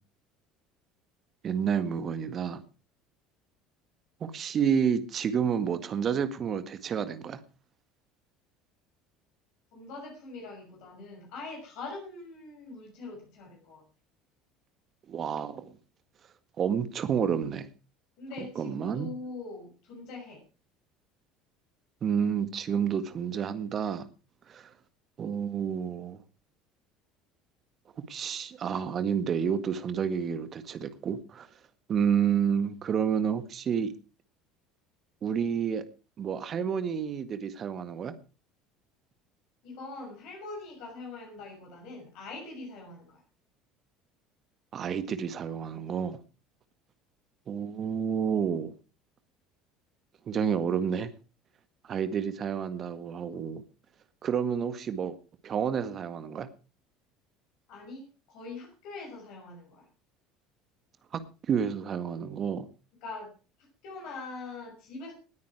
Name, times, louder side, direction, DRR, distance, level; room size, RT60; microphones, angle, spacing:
voice 1, 1.4-2.6 4.2-7.4 15.1-15.7 16.6-17.7 18.6-19.1 22.0-24.0 24.5-24.7 25.2-26.2 28.1-31.5 31.9-33.9 35.2-35.8 36.2-38.1 44.7-46.2 47.5-48.7 50.3-51.1 51.9-53.6 54.2-55.2 55.4-56.5 61.1-61.2 61.5-62.7, right 7 dB, 40° right, 11 dB, 1.8 m, -29 dB
voice 2, 9.7-13.8 18.2-20.4 39.6-43.2 57.7-59.8 63.0-63.3 63.8-65.1, left 3 dB, 60° left, 0 dB, 6.0 m, -42 dB
19.0 x 9.5 x 4.8 m, 0.35 s
hypercardioid pair, 65°, 0 cm